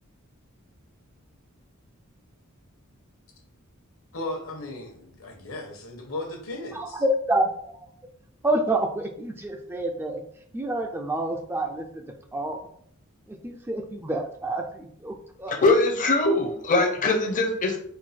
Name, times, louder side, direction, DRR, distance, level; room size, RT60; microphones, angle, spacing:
voice 1, 4.1-7.0, left 2 dB, 75° left, 1.1 m, -36 dB
voice 2, 6.7-7.9 8.4-10.2 10.5-12.7 13.3-15.6, right 1 dB, 10° right, 0.4 m, -28 dB
voice 3, 15.5-17.8, left 2 dB, 40° left, 0.6 m, -22 dB
4.5 x 2.3 x 4.2 m
head